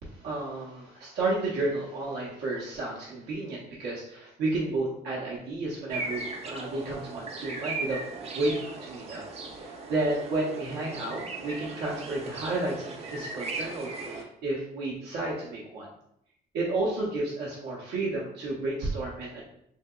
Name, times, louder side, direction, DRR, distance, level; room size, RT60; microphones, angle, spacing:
voice 1, 0.0-8.0 8.3-9.2 9.5-15.9 16.5-19.4, right 2 dB, 85° right, -6 dB, 0.7 m, -32 dB
sound 1, 5.9-14.2, right 3 dB, 40° right, 0.5 m, -38 dB
3.3 x 2.7 x 2.3 m, 0.76 s
cardioid pair, 110°, 17 cm